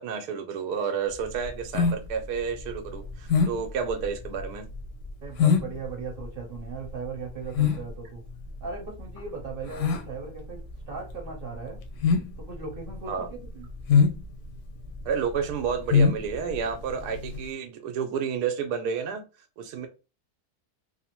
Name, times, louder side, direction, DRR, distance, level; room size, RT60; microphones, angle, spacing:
voice 1, 0.0-4.7 13.1-13.3 15.0-19.2 19.6-19.9, right 6 dB, 85° right, 1.1 m, -30 dB
sound 1, 1.1-17.5, left 6 dB, 70° left, 0.8 m, -26 dB
voice 2, 5.2-8.2 8.6-11.8 12.4-13.7, right 5 dB, 45° right, 0.9 m, -38 dB
3.2 x 2.0 x 2.9 m
omnidirectional pair, 1.7 m